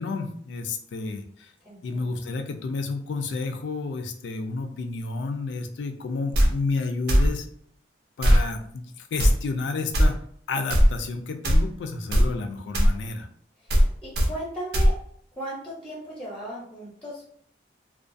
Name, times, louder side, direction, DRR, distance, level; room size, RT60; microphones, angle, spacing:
voice 1, 0.0-1.5 1.8-7.5 8.2-10.2 10.5-13.3, left 3 dB, 80° left, 6 dB, 0.4 m, -31 dB
voice 2, 1.6-2.1 14.0-14.9 15.4-17.2, right 1 dB, 5° left, -6 dB, 0.5 m, -36 dB
sound 1, 6.3-6.5 7.1-7.3 8.2-8.4 9.2-9.3 9.9-10.1 10.7-10.9 11.4-11.6 12.1-12.3 12.7-12.9 13.7-13.9 14.1-14.3 14.7-14.9, equal, 60° right, 0.5 m, -17 dB
2.4 x 2.2 x 2.5 m, 0.64 s
head